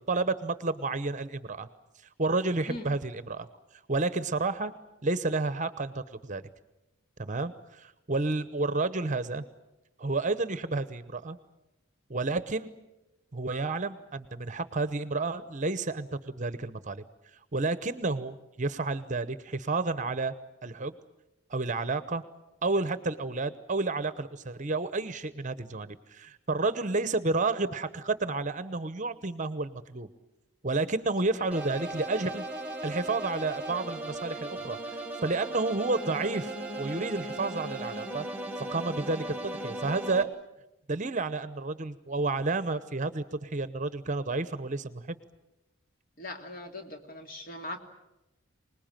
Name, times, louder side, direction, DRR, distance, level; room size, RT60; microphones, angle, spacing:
voice 1, 0.1-1.7 2.2-3.5 3.9-4.7 5.0-6.4 7.2-9.4 10.0-11.4 12.1-12.7 13.3-17.0 17.5-20.3 20.6-20.9 21.5-22.2 22.6-30.1 30.6-32.4 32.8-34.8 35.2-38.2 38.6-40.3 40.9-45.2, right 3 dB, 35° right, 13 dB, 0.9 m, -30 dB
sound 1, 31.5-40.2, right 1 dB, 5° right, 1.8 m, -37 dB
voice 2, 46.2-47.8, left 1 dB, 45° left, 4 dB, 2.8 m, -40 dB
26.0 x 20.0 x 9.0 m, 0.95 s
head